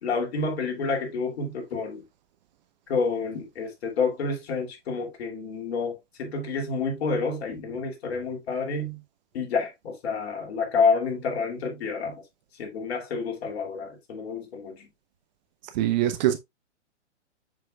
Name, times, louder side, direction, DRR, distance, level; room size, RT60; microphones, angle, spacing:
voice 1, 0.0-2.0 2.9-9.0 9.3-12.2 12.6-14.9, left 4 dB, 60° left, 2.9 m, -29 dB
voice 2, 15.7-16.4, right 12 dB, 35° right, 0.9 m, -23 dB
7.0 x 6.0 x 2.3 m
hypercardioid pair, 125°, 36 cm